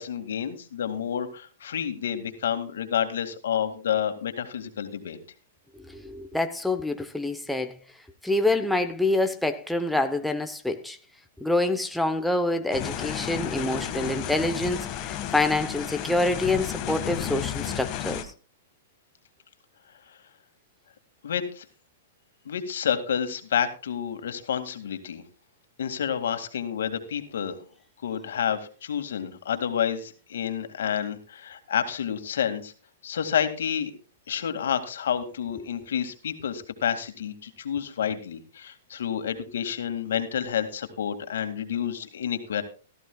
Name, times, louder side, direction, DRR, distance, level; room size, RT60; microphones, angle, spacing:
voice 1, 0.0-5.2 21.2-21.6 22.5-25.2 25.8-27.6 28.0-32.7 33.0-33.9 34.3-42.6, left 8 dB, 80° left, 2.1 m, -29 dB
voice 2, 5.9-7.7 8.2-11.0 11.4-18.3, left 2 dB, ahead, 0.8 m, -26 dB
sound 1, 12.7-18.2, left 10 dB, 35° left, 1.7 m, -32 dB
16.5 x 14.0 x 2.3 m
hypercardioid pair, 145°, 0 cm